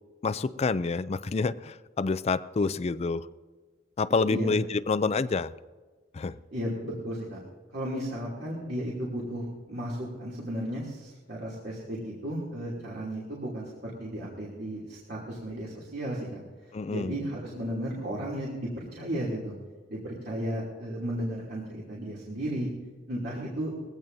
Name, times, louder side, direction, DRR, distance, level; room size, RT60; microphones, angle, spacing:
voice 1, 0.2-3.3 4.0-5.5 6.1-6.4 16.7-17.2, left 4 dB, 35° left, 14 dB, 0.4 m, -28 dB
voice 2, 6.5-7.4 7.7-16.4 16.9-19.5 19.9-22.7 23.1-23.7, right 1 dB, 60° right, -5 dB, 2.8 m, -34 dB
21.0 x 16.5 x 2.7 m, 1.4 s
head